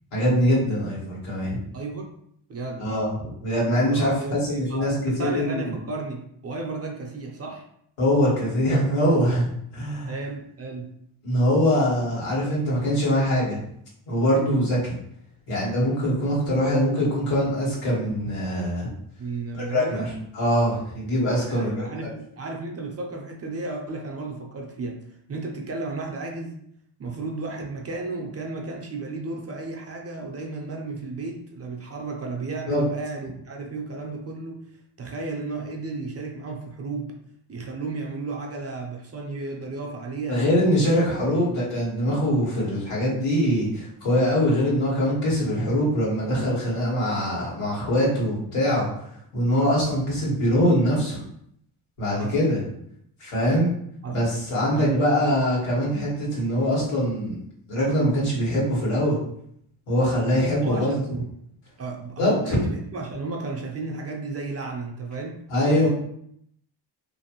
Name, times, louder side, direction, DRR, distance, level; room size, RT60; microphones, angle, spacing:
voice 1, 0.1-1.6 2.8-3.1 3.4-5.7 8.0-9.5 9.7-10.1 11.2-13.6 14.1-14.9 15.5-18.9 19.5-20.1 20.3-21.9 32.7-32.8 40.3-48.9 49.3-51.2 52.0-52.6 53.2-53.7 54.1-57.4 57.7-59.2 59.9-60.9 62.2-62.6 65.5-65.9, equal, 85° left, -5 dB, 1.4 m, -23 dB
voice 2, 1.7-2.1 2.5-2.9 3.9-7.6 10.1-10.9 19.2-20.1 21.5-25.0 25.3-26.6 27.0-34.6 35.0-37.1 37.5-40.5 40.8-40.9 41.2-41.4 52.1-52.4 53.3-53.6 54.0-54.2 54.7-55.3 60.6-61.3 61.8-65.4 65.8-65.9, right 3 dB, 30° right, 2 dB, 0.5 m, -33 dB
2.6 x 2.5 x 2.8 m, 0.70 s
cardioid pair, 75°, 50 cm